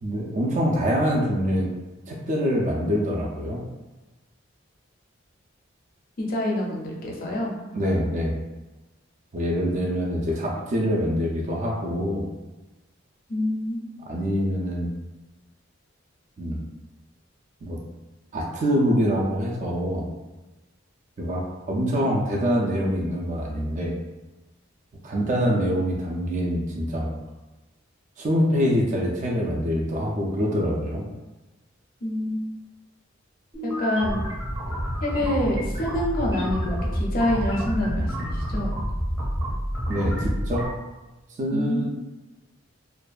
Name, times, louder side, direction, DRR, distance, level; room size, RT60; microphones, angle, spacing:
voice 1, 0.0-1.7 2.1-3.6 7.7-8.4 9.3-12.3 14.1-14.9 16.4-16.6 17.6-17.8 18.3-20.1 21.2-24.0 25.0-27.2 28.2-31.1 39.9-40.7 41.4-41.9, equal, 40° right, -2 dB, 0.3 m, -25 dB
voice 2, 6.2-7.6 13.3-13.9 32.0-32.4 33.6-34.2 35.0-38.7 41.5-41.9, left 1 dB, 45° left, -2 dB, 0.4 m, -26 dB
sound 1, 33.5-40.7, equal, 10° right, 0.7 m, -28 dB
2.5 x 2.2 x 2.3 m, 1.1 s
head